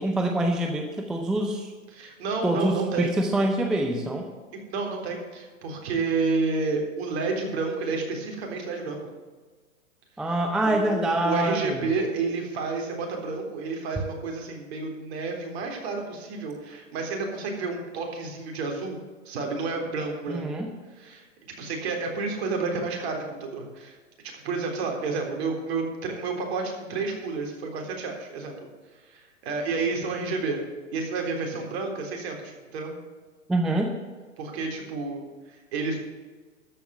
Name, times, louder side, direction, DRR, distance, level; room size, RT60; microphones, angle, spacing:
voice 1, 0.0-1.7 2.4-4.3 10.2-11.8 20.3-20.7 33.5-33.9, right 1 dB, ahead, 3 dB, 0.4 m, -25 dB
voice 2, 1.9-3.1 4.5-9.0 10.6-19.0 19.3-20.4 21.0-21.2 21.6-24.0 24.4-28.7 29.1-30.6 30.9-32.9 34.4-36.0, right 4 dB, 50° right, 2 dB, 3.7 m, -30 dB
13.5 x 5.6 x 8.9 m, 1.4 s
hypercardioid pair, 125°, 40 cm